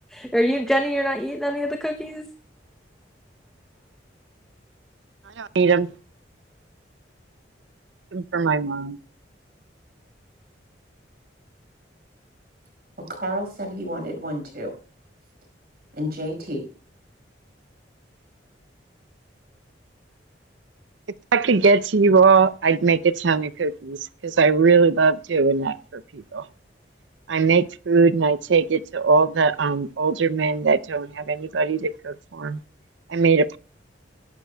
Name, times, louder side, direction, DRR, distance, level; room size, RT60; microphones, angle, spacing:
voice 1, 0.1-2.3, equal, ahead, 0.8 m, -24 dB
voice 2, 5.4-5.9 8.1-9.0 21.3-24.0 24.2-26.4 27.3-32.6 33.1-33.6, right 4 dB, 90° right, 0.6 m, -20 dB
voice 3, 13.1-14.7 15.9-16.7, equal, 55° right, 5.4 m, -30 dB
21.5 x 11.5 x 2.3 m
head